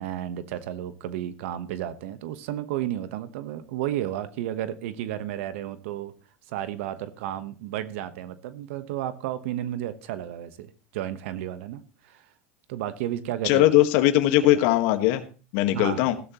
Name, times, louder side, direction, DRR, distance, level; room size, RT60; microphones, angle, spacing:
voice 1, 0.0-6.1 6.5-12.3 12.7-13.6 15.7-16.0, right 12 dB, 75° right, 1.1 m, -32 dB
voice 2, 13.4-15.2 15.5-16.2, left 14 dB, 65° left, 1.5 m, -20 dB
15.5 x 12.5 x 3.0 m
supercardioid pair, 105°, 7 cm